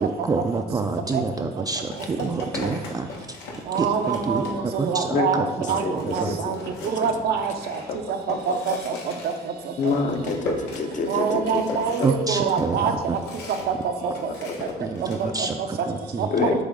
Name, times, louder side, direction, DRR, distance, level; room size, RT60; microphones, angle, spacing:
voice 1, 0.0-3.4 3.8-4.4 4.8-6.4 12.0-13.2 14.8-16.3, right 4 dB, 20° right, 4 dB, 0.3 m, -28 dB
Foot Steps on concrete, 0.9-1.1 1.9-4.9 5.3-5.4 5.7-13.8 14.1-15.3, left 2 dB, 85° left, 1.4 m, -37 dB
voice 2, 3.7-7.8 8.1-9.7 11.1-13.2 13.5-14.3 14.6-14.7 15.0-15.1 15.4-15.5 16.2-16.6, right 6 dB, 70° right, 5 dB, 0.7 m, -26 dB
voice 3, 5.8-6.4 6.8-6.9 8.3-8.4 9.8-11.6 14.7-14.8 15.2-15.3 16.3-16.6, left 4 dB, 45° left, 5 dB, 0.7 m, -26 dB
8.3 x 3.1 x 3.7 m, 1.2 s
cardioid pair, 110°, 17 cm